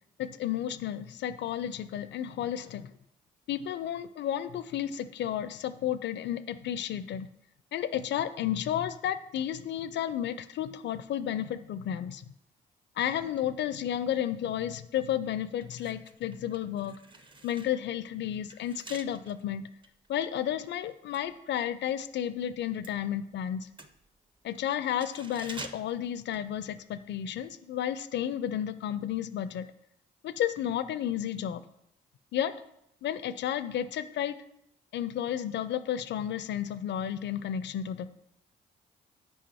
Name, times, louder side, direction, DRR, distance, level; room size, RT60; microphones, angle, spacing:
voice 1, 0.2-2.9 3.5-7.3 7.7-12.2 13.0-16.9 17.4-19.6 20.1-23.7 24.4-29.7 30.2-31.6 32.3-32.5 33.0-34.3 34.9-38.1, left 10 dB, 60° left, 14 dB, 0.5 m, -32 dB
Closet hanger, 14.9-15.1 15.5-22.1 22.4-27.1 27.4-27.5, right 3 dB, 25° right, 0.7 m, -50 dB
5.5 x 4.9 x 4.2 m, 0.79 s
hypercardioid pair, 45°, 21 cm